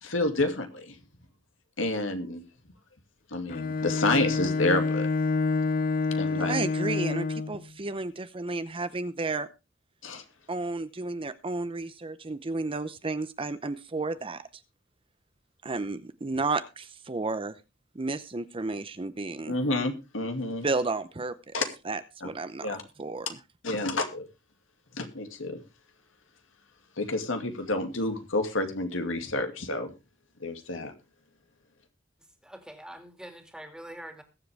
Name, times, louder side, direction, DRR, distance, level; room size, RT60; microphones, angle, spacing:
voice 1, 0.0-1.0 1.8-2.4 3.3-5.1 6.1-6.5 10.0-10.2 19.5-20.7 21.5-21.6 22.2-22.3 22.6-22.8 23.6-24.3 24.9-25.6 27.0-29.9 30.4-30.9, left 2 dB, 85° left, 6 dB, 2.3 m, -29 dB
Bowed string instrument, 3.5-7.6, left 4 dB, 45° left, 0.6 m, -28 dB
voice 2, 6.3-9.5 10.5-14.5 15.6-17.6 17.9-19.6 20.6-21.5 21.9-22.7 23.0-23.3, right 3 dB, 30° right, 12 dB, 0.7 m, -32 dB
voice 3, 32.4-34.2, right 1 dB, 5° right, 5 dB, 2.5 m, -44 dB
21.0 x 7.7 x 3.4 m, 0.27 s
head